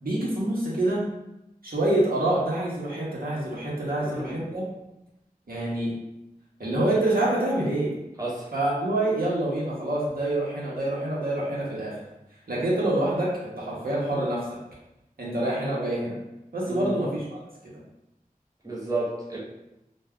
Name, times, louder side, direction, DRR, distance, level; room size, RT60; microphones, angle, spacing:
voice 1, 0.0-1.1 1.6-4.6 5.5-5.9 6.6-7.9 8.5-12.0 12.5-14.6 15.2-16.2 16.5-17.4 17.6-17.7, right 1 dB, 85° right, -6 dB, 0.8 m, -26 dB
voice 2, 4.0-4.5 8.2-8.5 16.7-17.0 18.6-19.4, right 2 dB, 25° right, -5 dB, 0.8 m, -31 dB
2.2 x 2.2 x 3.5 m, 0.91 s
wide cardioid pair, 40°, 15 cm